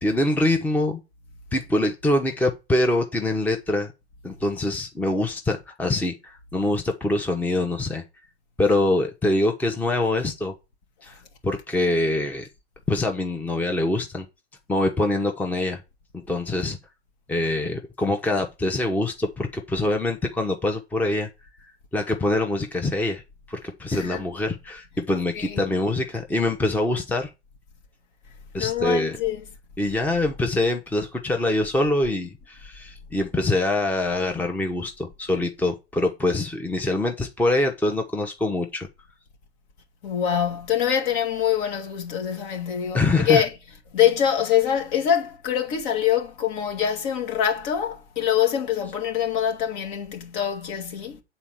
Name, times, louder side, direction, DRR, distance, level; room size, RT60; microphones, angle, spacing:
voice 1, 0.0-1.0 1.5-3.9 4.2-8.0 8.6-10.5 11.0-11.1 11.4-12.5 12.9-14.3 14.7-15.8 16.1-16.8 17.3-21.3 21.9-23.2 23.5-27.3 28.5-29.2 29.8-38.9 42.9-43.4, left 2 dB, 5° left, 0.9 m, -24 dB
voice 2, 23.9-24.2 25.4-25.7 28.6-29.4 40.0-43.5 43.9-51.2, left 9 dB, 50° left, 2.0 m, -24 dB
8.4 x 4.1 x 7.0 m
figure-of-eight pair, 95°, 33 cm